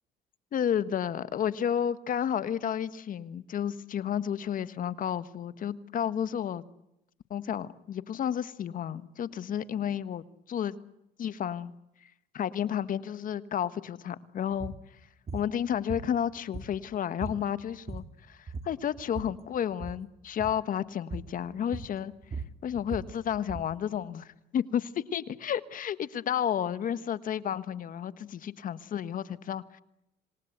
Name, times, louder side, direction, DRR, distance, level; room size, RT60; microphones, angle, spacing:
voice 1, 0.5-6.6 7.3-10.8 11.2-11.7 12.3-14.7 15.3-22.1 22.6-29.8, left 9 dB, 55° left, 14 dB, 1.4 m, -31 dB
sound 1, 14.5-14.8 15.3-15.5 15.9-16.9 17.2-17.4 17.7-18.2 18.5-19.4 19.7-20.0 20.4-20.6 21.1-21.4 21.7-23.7, right 3 dB, 40° right, 2.7 m, -39 dB
27.5 x 19.0 x 8.0 m, 0.83 s
supercardioid pair, 75°, 17 cm